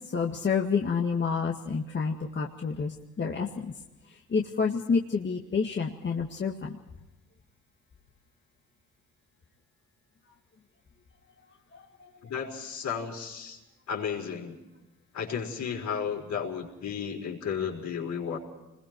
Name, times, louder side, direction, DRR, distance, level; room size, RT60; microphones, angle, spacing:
voice 1, 0.1-3.7 4.3-6.8 11.7-12.1, left 5 dB, 40° left, 1 dB, 2.0 m, -29 dB
voice 2, 12.2-13.6 13.9-14.6 15.1-18.4, left 7 dB, 70° left, 1 dB, 5.5 m, -33 dB
29.0 x 21.5 x 4.6 m, 0.99 s
cardioid pair, 90°, 30 cm